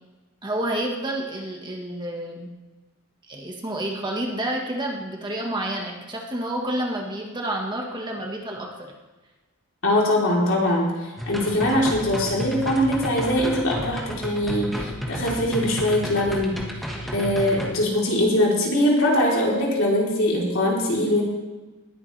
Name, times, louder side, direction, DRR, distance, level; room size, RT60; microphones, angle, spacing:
voice 1, 0.4-2.5 3.3-8.9, right 1 dB, 20° right, 0 dB, 1.6 m, -29 dB
voice 2, 9.8-10.9 11.3-16.6 17.1-21.2, left 1 dB, 65° left, -3 dB, 3.7 m, -22 dB
sound 1, 11.2-17.7, equal, ahead, 1.6 m, -32 dB
20.0 x 9.8 x 3.4 m, 1.2 s
head